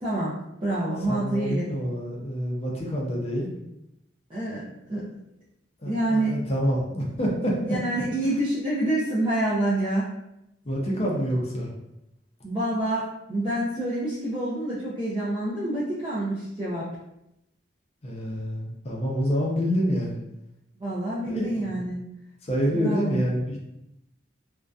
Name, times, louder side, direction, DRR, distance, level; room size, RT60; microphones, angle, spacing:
voice 1, 0.0-1.7 4.3-4.6 4.9-5.0 5.8-6.3 7.7-10.1 12.4-16.9 20.8-22.0 22.7-23.2, right 1 dB, 25° right, -10 dB, 0.4 m, -27 dB
voice 2, 1.1-3.6 5.8-7.6 10.6-11.7 18.0-20.2 21.2-21.5 21.7-21.9 22.4-23.6, equal, 30° left, -2 dB, 0.5 m, -27 dB
2.5 x 2.2 x 2.3 m, 0.85 s
head